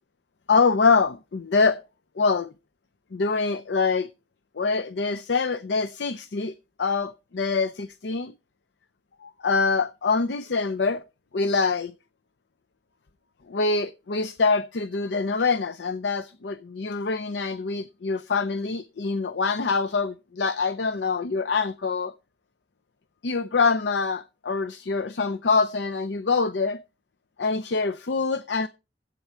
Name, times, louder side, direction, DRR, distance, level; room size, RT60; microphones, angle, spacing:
voice 1, 0.5-1.8 2.2-2.5 3.1-4.1 4.6-8.3 9.2-11.0 11.3-11.9 13.5-22.1 23.2-26.8 27.4-28.7, left 4 dB, 75° left, 0.6 m, -25 dB
11.5 x 8.5 x 4.4 m
head